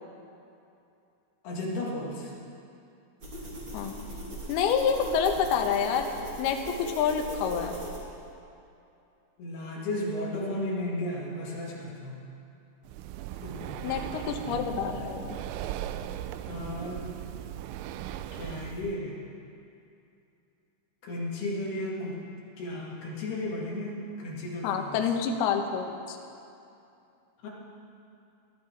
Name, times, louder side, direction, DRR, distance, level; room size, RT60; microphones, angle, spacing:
voice 1, 1.4-2.3 9.4-12.2 13.4-14.8 16.5-17.1 18.3-19.2 21.0-22.3 22.6-25.0 27.4-27.5, left 1 dB, 60° left, -4 dB, 3.7 m, -34 dB
sound 1, 3.2-8.3, right 1 dB, 35° right, 2.1 m, -40 dB
voice 2, 4.5-6.1 6.4-7.8 13.8-15.4 24.6-26.2, left 7 dB, 75° left, 3 dB, 2.4 m, -28 dB
Breathing, 12.8-19.0, right 12 dB, 90° right, 3.2 m, -38 dB
21.0 x 12.5 x 4.6 m, 2.6 s
omnidirectional pair, 5.8 m